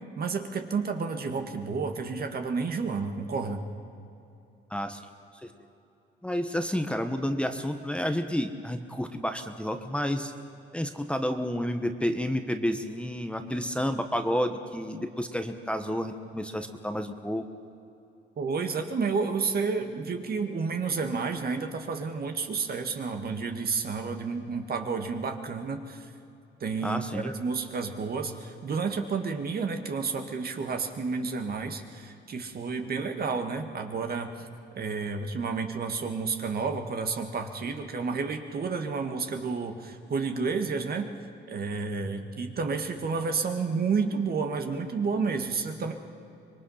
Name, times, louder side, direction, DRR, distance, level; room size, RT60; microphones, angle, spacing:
voice 1, 0.2-3.6 18.4-26.1 26.6-34.5 34.8-41.1 41.5-45.9, right 4 dB, 50° right, 5 dB, 1.9 m, -30 dB
voice 2, 4.7-5.0 5.4-5.5 6.2-10.3 10.7-17.4 26.8-27.3, equal, 5° left, 6 dB, 1.3 m, -30 dB
25.5 x 22.0 x 5.8 m, 2.8 s
cardioid pair, 90°, 20 cm